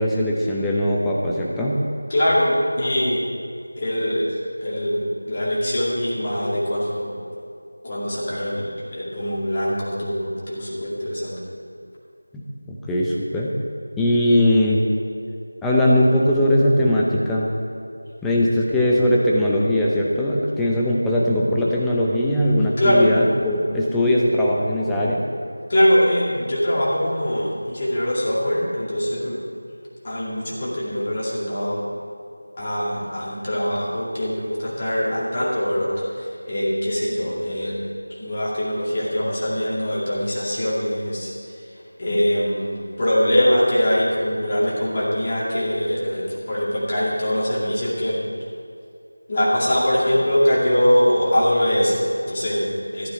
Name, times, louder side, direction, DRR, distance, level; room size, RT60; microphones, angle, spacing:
voice 1, 0.0-1.8 12.7-13.6 14.0-14.8 15.6-17.5 18.2-25.2, left 1 dB, 5° left, -5 dB, 0.7 m, -20 dB
voice 2, 2.1-3.2 3.8-7.1 7.8-11.4 22.8-23.0 25.7-29.4 30.0-31.8 32.6-35.9 36.2-37.8 38.2-41.3 42.0-48.2 49.3-53.1, equal, 25° left, -6 dB, 2.4 m, -22 dB
14.0 x 9.7 x 4.6 m, 2.4 s
figure-of-eight pair, 170°, 0 cm